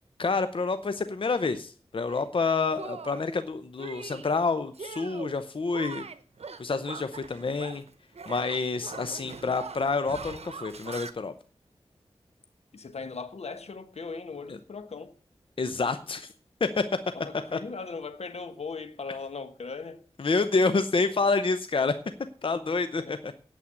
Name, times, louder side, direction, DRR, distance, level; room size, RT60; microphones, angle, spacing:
voice 1, 0.2-6.0 6.6-7.8 8.3-11.3 15.6-16.3 16.6-16.8 17.5-17.6 20.2-21.9 22.4-23.3, left 4 dB, 55° left, 0.7 m, -28 dB
Shatter, 2.1-2.3 2.8-3.3 3.8-4.3 4.7-5.4 5.7-7.9 8.1-11.1, right 5 dB, 80° right, 0.8 m, -42 dB
voice 2, 12.7-15.1 17.1-20.0 23.0-23.1, left 4 dB, 80° left, 1.2 m, -38 dB
8.6 x 7.9 x 8.1 m
wide cardioid pair, 85°, 11 cm